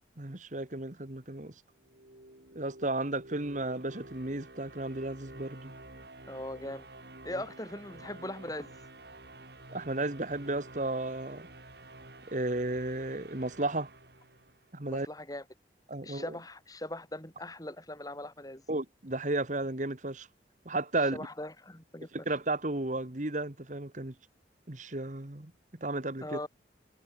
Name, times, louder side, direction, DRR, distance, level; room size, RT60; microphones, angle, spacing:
voice 1, 0.2-1.5 2.5-5.7 9.7-11.5 12.3-13.9 14.7-15.1 15.9-16.3 18.7-20.3 20.6-21.3 22.1-24.1 24.7-25.5 25.8-26.4, right 2 dB, 45° right, 1.6 m, -33 dB
sound 1, 1.7-14.9, right 2 dB, 60° right, 4.2 m, -50 dB
voice 2, 6.3-6.9 7.2-8.7 14.8-15.4 16.0-18.6 21.1-22.1 26.2-26.5, left 1 dB, 20° left, 6.0 m, -40 dB
head